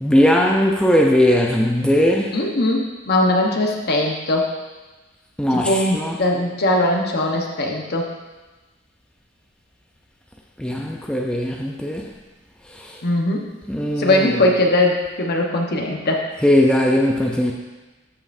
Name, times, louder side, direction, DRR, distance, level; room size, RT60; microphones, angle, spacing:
voice 1, 0.0-2.4 5.4-6.2 10.6-12.1 13.7-14.3 16.4-17.5, left 1 dB, 5° left, -1 dB, 0.6 m, -18 dB
voice 2, 2.3-4.5 5.5-8.1 13.0-13.5 14.0-16.3, left 1 dB, 55° left, 1 dB, 1.1 m, -20 dB
13.5 x 5.6 x 2.7 m, 1.2 s
head